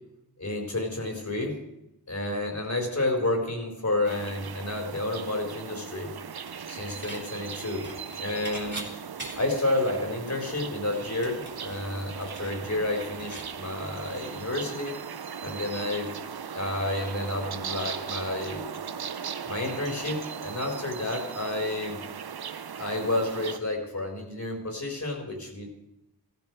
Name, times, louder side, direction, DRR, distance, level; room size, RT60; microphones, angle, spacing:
voice 1, 0.4-1.6 2.1-6.1 6.7-7.9 8.2-8.9 9.4-15.0 15.4-16.1 16.5-18.6 19.4-22.0 22.8-25.7, left 2 dB, 50° left, 1 dB, 4.3 m, -30 dB
sound 1, 4.0-23.6, right 7 dB, 80° right, 0.8 m, -38 dB
Dishes pots and pans / Chink clink, 6.5-7.2 7.5-9.6 10.0-10.1 10.4-13.5, right 2 dB, 30° right, 3.1 m, -43 dB
16.5 x 14.0 x 4.7 m, 0.86 s
wide cardioid pair, 75°, 38 cm